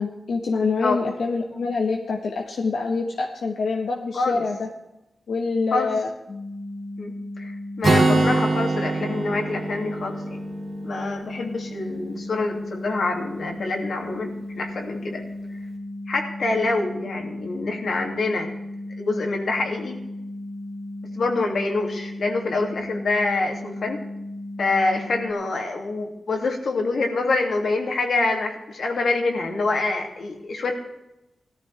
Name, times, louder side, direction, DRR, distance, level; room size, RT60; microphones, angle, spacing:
voice 1, 0.0-4.7 5.3-6.1 8.1-8.4, left 4 dB, 85° left, 1 dB, 1.5 m, -26 dB
voice 2, 4.1-4.4 5.7-5.9 7.0-10.2 10.8-15.2 16.1-18.5 19.0-20.0 21.1-24.0 24.6-30.7, left 3 dB, 70° left, 2 dB, 2.7 m, -26 dB
sound 1, 6.3-25.3, left 1 dB, 50° left, 2.0 m, -35 dB
Acoustic guitar, 7.8-11.6, right 3 dB, 65° right, 2.7 m, -24 dB
18.0 x 13.5 x 3.5 m, 0.92 s
wide cardioid pair, 115°, 0 cm